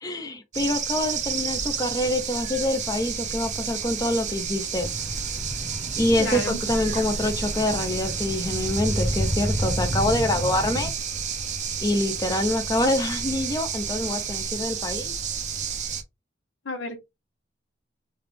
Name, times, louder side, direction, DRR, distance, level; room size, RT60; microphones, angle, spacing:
voice 1, 0.0-4.9 6.0-10.9 11.8-15.1, left 1 dB, 20° left, 0.5 m, -26 dB
sound 1, 0.5-16.0, right 6 dB, 40° right, 0.6 m, -31 dB
sound 2, 4.8-10.9, equal, ahead, 0.9 m, -30 dB
voice 2, 6.2-6.6 16.7-17.0, left 3 dB, 90° left, 1.1 m, -30 dB
3.4 x 2.3 x 3.3 m
head